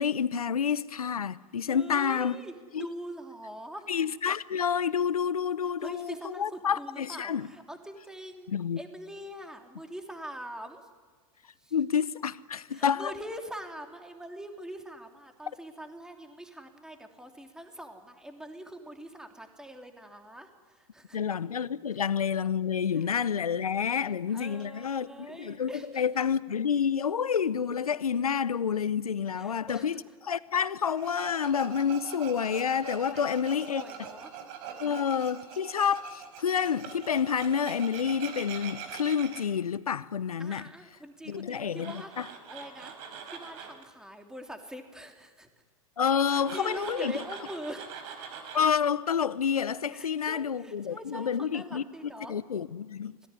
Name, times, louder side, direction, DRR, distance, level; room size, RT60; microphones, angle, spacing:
voice 1, 0.0-2.4 2.7-2.8 3.9-7.5 8.5-8.8 11.7-13.1 21.1-25.1 25.4-25.7 26.0-29.9 30.2-33.8 34.8-40.6 41.3-41.9 46.0-47.1 48.5-51.8 52.3-53.3, left 7 dB, 85° left, 0.9 m, -28 dB
voice 2, 1.7-3.9 5.6-8.5 8.8-10.9 11.6-11.8 12.6-21.2 21.9-22.1 22.9-23.1 23.9-26.0 29.3-30.0 33.1-34.4 40.4-42.9 43.3-45.5 46.2-48.2 49.9-52.4, right 1 dB, 5° right, 3.0 m, -43 dB
Tools, 30.8-39.4 41.6-43.8 46.1-48.6, right 7 dB, 55° right, 4.7 m, -43 dB
25.5 x 18.0 x 9.8 m
hypercardioid pair, 95°, 18 cm